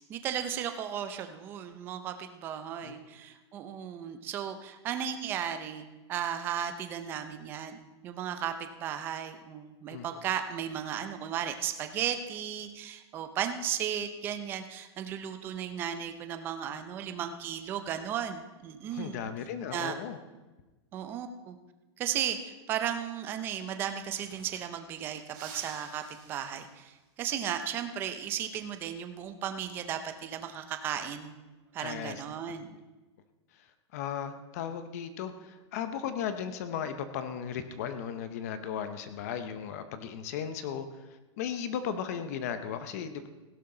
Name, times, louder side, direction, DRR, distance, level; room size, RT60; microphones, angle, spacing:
voice 1, 0.1-19.3 19.7-20.0 20.9-21.6 22.0-31.3 31.7-32.7, right 9 dB, 15° right, 8 dB, 0.5 m, -35 dB
voice 2, 18.9-20.2 31.8-32.2 32.7-32.8 33.6-33.7 33.9-41.1 41.4-43.3, left 8 dB, 35° left, 10 dB, 0.7 m, -36 dB
sound 1, 24.0-24.9 25.3-27.0 29.5-29.8 31.2-31.7, right 5 dB, 35° right, 3.2 m, -51 dB
16.5 x 11.5 x 3.8 m, 1.1 s
supercardioid pair, 180°, 15 cm